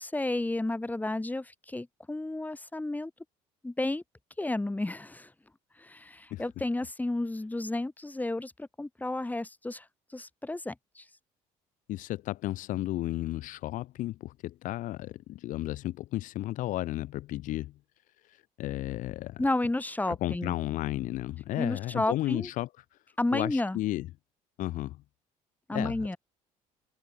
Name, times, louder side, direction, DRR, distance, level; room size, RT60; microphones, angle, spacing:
voice 1, 0.0-3.1 3.6-4.0 4.4-5.3 5.8-11.1 19.4-20.6 21.6-22.5 23.2-23.8 25.7-26.2, left 2 dB, 10° left, 5.2 m, -32 dB
voice 2, 11.9-17.7 18.6-19.4 20.1-22.7 23.3-24.1 24.6-25.0 25.7-26.1, left 16 dB, 70° left, 1.2 m, -33 dB
supercardioid pair, 90°, 14 cm